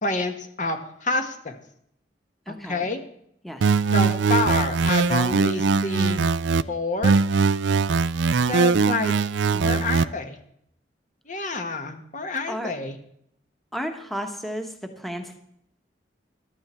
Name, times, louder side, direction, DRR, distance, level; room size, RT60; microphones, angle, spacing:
voice 1, 0.0-1.6 2.5-3.0 3.9-6.3 6.7-7.2 8.5-9.1 9.6-10.4 11.3-13.0, left 3 dB, 45° left, 7 dB, 1.4 m, -28 dB
voice 2, 2.5-2.9 3.4-3.6 9.5-9.9 11.3-11.6 12.5-12.7 13.7-15.4, equal, ahead, 5 dB, 1.2 m, -33 dB
sound 1, 3.6-6.6 7.0-10.0, right 4 dB, 80° right, 0.4 m, -21 dB
14.5 x 12.0 x 4.4 m, 0.71 s
head